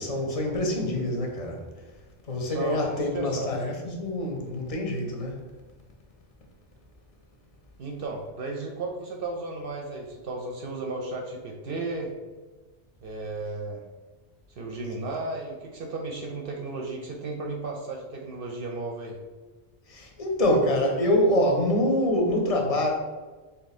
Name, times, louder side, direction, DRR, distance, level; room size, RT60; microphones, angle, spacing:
voice 1, 0.0-1.6 2.3-5.3 19.9-22.9, left 1 dB, 40° left, 1 dB, 0.7 m, -25 dB
voice 2, 2.4-3.5 7.8-12.1 13.0-13.8 14.6-19.2, right 3 dB, 65° right, 0 dB, 0.7 m, -34 dB
3.5 x 2.8 x 4.1 m, 1.3 s
omnidirectional pair, 1.1 m